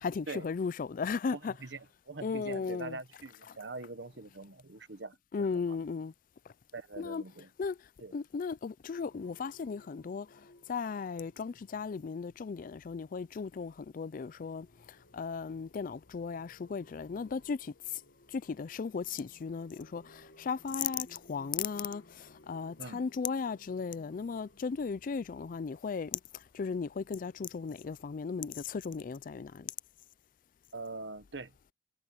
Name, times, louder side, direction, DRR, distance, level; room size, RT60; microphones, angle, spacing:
voice 1, 0.0-1.5 2.2-3.0 5.3-6.1 7.0-7.2 7.6-18.0 18.3-29.7, left 5 dB, 50° left, 0.4 m, -36 dB
voice 2, 1.3-5.2 5.5-5.8 6.7-7.5 8.0-8.1 22.8-23.0 30.7-31.5, right 3 dB, 90° right, 1.3 m, -43 dB
sound 1, 8.9-14.0 14.3-28.1, left 1 dB, 80° left, 1.8 m, -62 dB
head